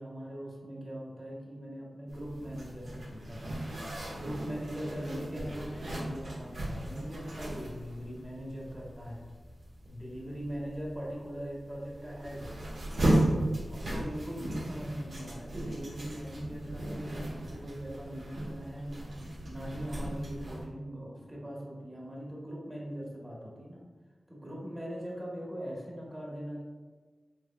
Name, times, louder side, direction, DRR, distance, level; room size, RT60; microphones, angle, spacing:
voice 1, 0.0-3.6 4.1-9.3 9.8-12.8 13.7-19.0 19.4-23.8 24.3-26.6, equal, 20° right, -3 dB, 1.0 m, -41 dB
Zipper (clothing), 2.1-20.6, right 1 dB, 75° right, 0.9 m, -36 dB
4.2 x 3.0 x 2.3 m, 1.4 s
cardioid pair, 45°, 0 cm